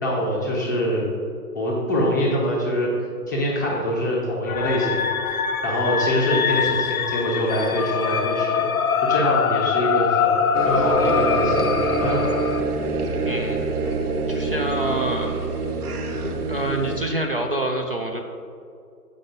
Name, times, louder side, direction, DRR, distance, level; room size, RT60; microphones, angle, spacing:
voice 1, 0.0-1.0 1.5-2.9 3.3-5.4 5.6-8.6 9.0-12.3, equal, 10° left, -5 dB, 0.6 m, -24 dB
sound 1, 4.5-12.6, left 7 dB, 60° left, 0.6 m, -23 dB
sound 2, 10.5-17.0, right 3 dB, 65° right, 1.2 m, -25 dB
voice 2, 13.2-13.7 14.3-15.4 16.5-18.2, right 1 dB, 40° right, 2 dB, 0.4 m, -26 dB
7.5 x 5.4 x 5.1 m, 2.4 s
figure-of-eight pair, 135°, 49 cm